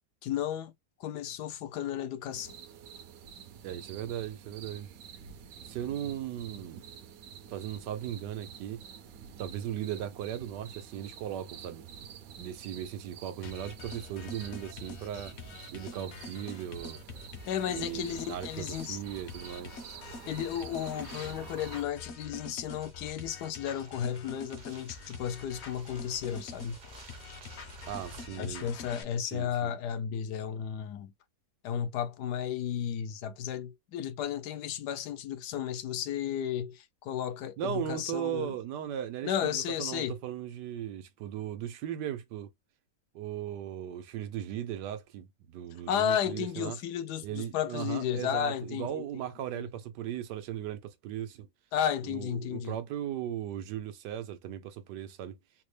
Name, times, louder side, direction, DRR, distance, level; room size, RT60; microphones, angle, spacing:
voice 1, 0.2-0.7 1.0-2.6 17.5-19.0 20.3-26.8 28.3-31.1 31.6-38.5 39.2-40.2 45.9-49.0 49.5-49.7 51.7-52.8, left 9 dB, 80° left, 1.2 m, -33 dB
sound 1, 2.3-21.8, right 8 dB, 65° right, 0.9 m, -48 dB
voice 2, 3.6-4.9 5.6-6.8 7.5-8.8 9.4-11.8 12.4-15.4 15.7-17.0 17.7-19.8 27.9-28.7 29.3-29.7 37.6-42.5 43.1-46.8 47.2-51.5 52.0-55.4, right 10 dB, 85° right, 1.3 m, -37 dB
sound 2, 13.4-29.0, left 4 dB, 55° left, 0.8 m, -46 dB
sound 3, 20.8-28.3, right 3 dB, 45° right, 0.6 m, -54 dB
4.1 x 2.0 x 3.2 m
omnidirectional pair, 1.8 m